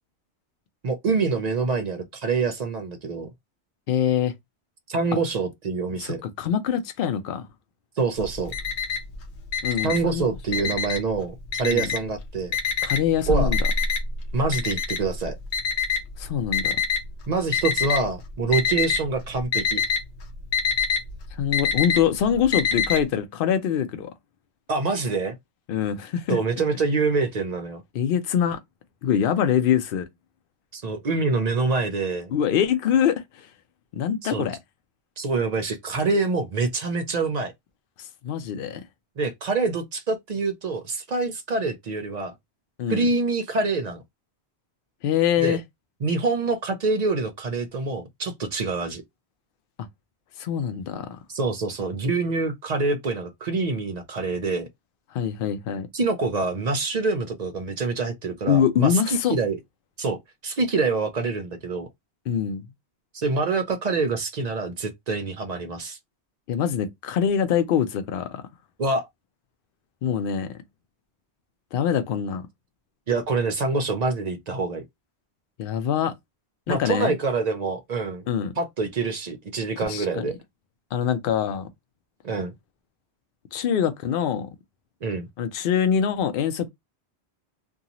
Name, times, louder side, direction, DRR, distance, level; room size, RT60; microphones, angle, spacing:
voice 1, 0.8-3.3 4.9-6.2 8.0-8.5 9.8-12.6 13.3-13.5 14.3-15.4 17.3-19.8 24.7-25.3 26.3-27.8 30.7-32.3 34.2-34.5 35.2-37.5 39.2-42.3 42.9-44.0 45.4-45.6 46.0-49.0 51.3-54.7 55.9-59.6 60.0-60.2 60.4-61.9 63.1-66.0 68.8-69.1 73.1-74.8 76.7-78.2 78.6-80.4 82.2-82.5 85.0-85.3, right 3 dB, 50° right, 0.5 m, -26 dB
voice 2, 3.9-4.3 6.0-7.5 9.6-10.2 11.6-11.9 12.8-13.6 16.2-16.8 21.4-24.1 25.7-26.4 27.9-28.6 29.0-30.1 32.3-33.5 33.9-34.6 38.0-38.8 42.8-43.1 45.0-45.6 50.4-51.2 55.1-55.9 58.5-59.3 62.3-62.6 66.5-68.4 70.0-70.5 71.7-72.5 75.6-76.1 76.7-77.1 78.3-78.5 79.8-80.3 80.9-81.7 83.5-84.5 85.4-86.7, left 8 dB, 60° left, 0.7 m, -24 dB
Alarm, 8.2-9.2 9.5-11.1 11.5-12.2 12.5-17.0 17.5-18.1 18.4-19.1 19.3-23.0, left 5 dB, 85° left, 1.0 m, -25 dB
2.6 x 2.3 x 2.8 m
omnidirectional pair, 1.1 m